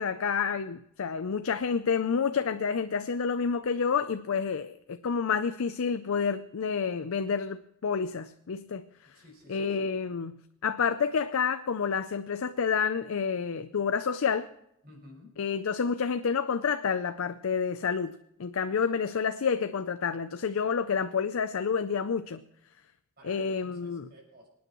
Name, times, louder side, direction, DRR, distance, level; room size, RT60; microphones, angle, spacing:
voice 1, 0.0-8.9 9.5-14.5 15.4-22.4 23.2-24.1, left 6 dB, 70° left, 0.5 m, -29 dB
voice 2, 9.1-9.9 14.8-15.3 23.2-24.5, equal, 45° right, 5.4 m, -53 dB
26.0 x 9.3 x 3.0 m
head